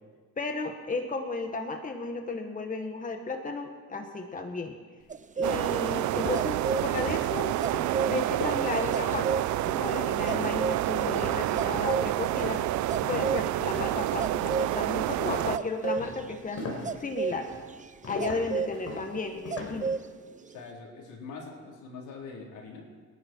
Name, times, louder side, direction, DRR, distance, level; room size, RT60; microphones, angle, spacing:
voice 1, 0.4-4.8 5.4-7.5 8.0-9.3 9.8-12.6 13.1-16.6 17.0-17.5 18.1-19.9, left 3 dB, 25° left, 4 dB, 1.6 m, -34 dB
sound 1, 5.1-14.8 15.5-20.1 20.3-20.6, right 5 dB, 25° right, 0.6 m, -34 dB
sound 2, 5.2-5.3 5.7-14.1 14.4-14.8 15.2-19.9, left 3 dB, 50° left, 4.6 m, -39 dB
sound 3, 5.4-15.6, right 15 dB, 75° right, 0.5 m, -28 dB
voice 2, 20.4-22.9, left 4 dB, 85° left, -2 dB, 4.2 m, -43 dB
27.0 x 10.5 x 4.7 m, 1.5 s
cardioid pair, 90°, 30 cm